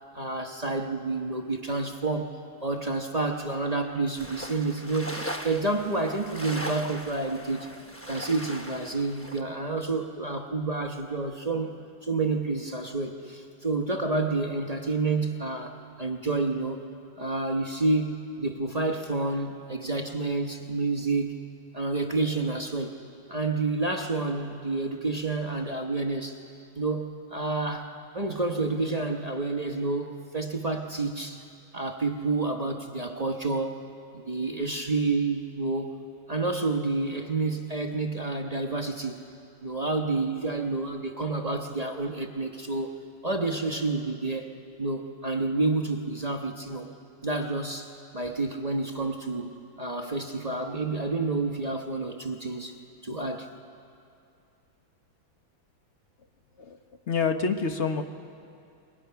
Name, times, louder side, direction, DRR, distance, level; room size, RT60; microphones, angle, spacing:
voice 1, 0.1-2.3 2.6-7.7 8.1-11.8 12.0-16.8 17.2-21.4 21.7-23.0 23.3-26.4 26.7-31.4 31.7-33.8 34.1-36.0 36.3-39.2 39.6-42.9 43.2-44.5 44.8-46.9 47.2-49.5 49.8-52.7 53.0-53.5, right 3 dB, 30° right, 2 dB, 0.7 m, -29 dB
sound 1, 4.2-9.4, equal, 20° left, 0.4 m, -39 dB
voice 2, 57.1-58.0, left 5 dB, 50° left, 6 dB, 0.9 m, -27 dB
29.0 x 22.0 x 5.7 m, 2.5 s
omnidirectional pair, 2.2 m